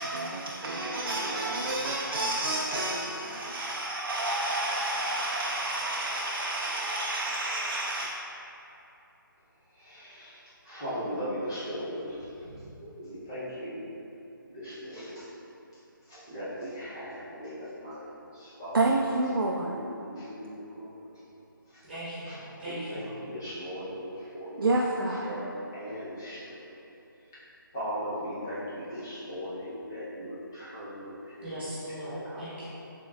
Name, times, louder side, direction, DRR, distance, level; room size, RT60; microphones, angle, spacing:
voice 1, 0.0-8.1 18.7-19.8 24.6-25.4, right 2 dB, 75° right, -1 dB, 0.4 m, -29 dB
voice 2, 9.8-10.4 10.6-12.2 12.4-13.9 14.5-15.3 16.1-18.8 19.6-20.9 22.3-22.4 22.6-24.8 25.2-25.5 25.7-26.6 27.7-31.5 32.1-32.7, equal, 10° left, -11 dB, 0.5 m, -38 dB
voice 3, 21.9-23.2 31.4-32.7, right 1 dB, 30° right, -12 dB, 1.1 m, -39 dB
5.2 x 3.6 x 2.3 m, 2.9 s
hypercardioid pair, 175°, 12 cm